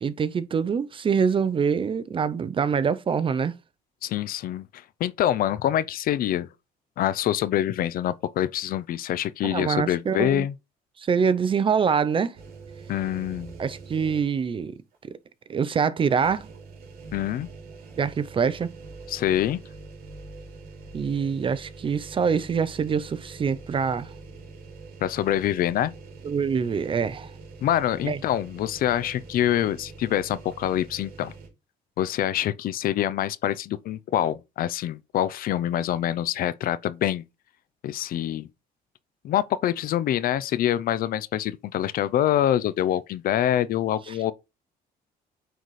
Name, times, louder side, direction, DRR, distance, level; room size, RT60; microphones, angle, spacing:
voice 1, 0.0-3.5 9.4-10.5 11.0-12.4 13.6-14.8 15.1-15.2 15.5-16.5 18.0-18.7 20.9-24.1 26.2-27.3 28.0-28.2, right 6 dB, 30° right, 0.5 m, -25 dB
voice 2, 4.0-6.5 7.0-10.5 12.9-13.5 17.1-17.5 19.1-19.6 25.0-25.9 27.6-31.3 32.0-37.2 37.8-38.5 39.2-44.3, left 11 dB, 60° left, 0.5 m, -25 dB
sound 1, 12.3-14.5 14.9-15.0 16.2-31.5, right 4 dB, 65° right, 2.6 m, -44 dB
9.1 x 4.0 x 3.2 m
cardioid pair, 110°, 17 cm